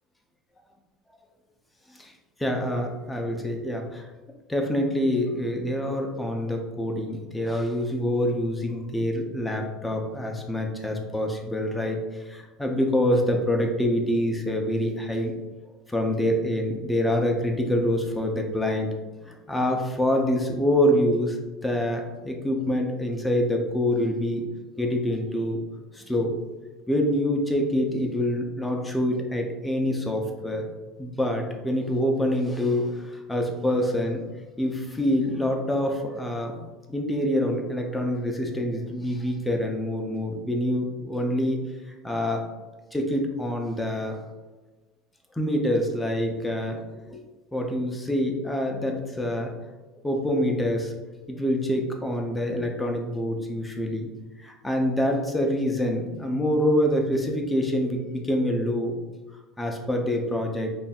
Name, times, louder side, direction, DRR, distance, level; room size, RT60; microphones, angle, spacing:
voice 1, 2.4-4.1 4.5-15.3 15.9-18.9 19.2-21.4 21.6-24.5 24.8-25.6 25.9-26.4 26.9-30.7 31.0-34.2 34.6-36.6 36.9-41.6 42.0-42.5 42.9-44.2 45.3-47.2 47.5-49.5 50.0-50.9 51.3-54.1 54.4-58.9 59.6-60.8, left 1 dB, 5° left, 2 dB, 0.5 m, -26 dB
4.2 x 3.3 x 2.3 m, 1.2 s
supercardioid pair, 135°, 0 cm